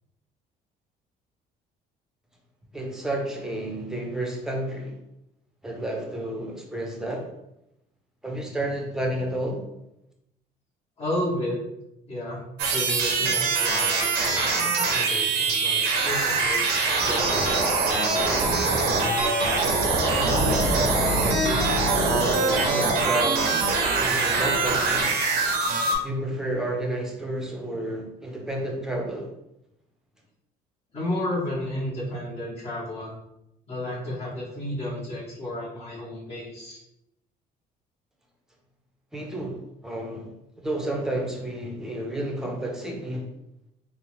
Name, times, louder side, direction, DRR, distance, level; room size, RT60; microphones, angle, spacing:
voice 1, 2.7-5.0 5.6-7.3 8.2-9.6 20.4-21.6 22.0-23.5 24.0-25.1 26.0-29.3 39.1-40.3 40.6-43.3, right 1 dB, 5° right, 0 dB, 0.6 m, -31 dB
voice 2, 11.0-11.6 12.1-12.4 12.7-17.7 30.9-33.1 33.7-36.8, left 1 dB, 35° left, -9 dB, 0.9 m, -32 dB
sound 1, 12.6-26.0, right 3 dB, 75° right, 0.6 m, -23 dB
sound 2, 20.3-22.2, left 1 dB, 15° left, 1.2 m, -29 dB
2.7 x 2.1 x 3.0 m, 0.86 s
cardioid pair, 110°, 17 cm